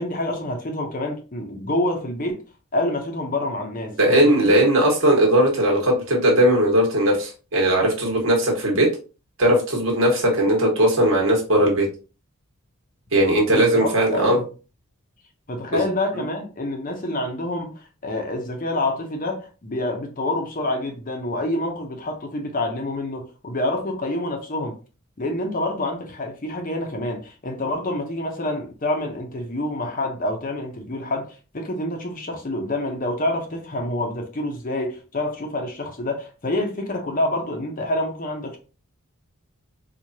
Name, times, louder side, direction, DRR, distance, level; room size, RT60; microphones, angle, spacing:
voice 1, 0.0-2.4 2.7-4.6 13.5-14.5 15.5-24.8 25.2-38.6, left 1 dB, 40° left, 0.7 m, -27 dB
voice 2, 4.0-8.9 9.4-11.8 13.1-14.4 15.7-15.8, right 1 dB, 60° right, 1.4 m, -18 dB
4.6 x 2.4 x 2.8 m
head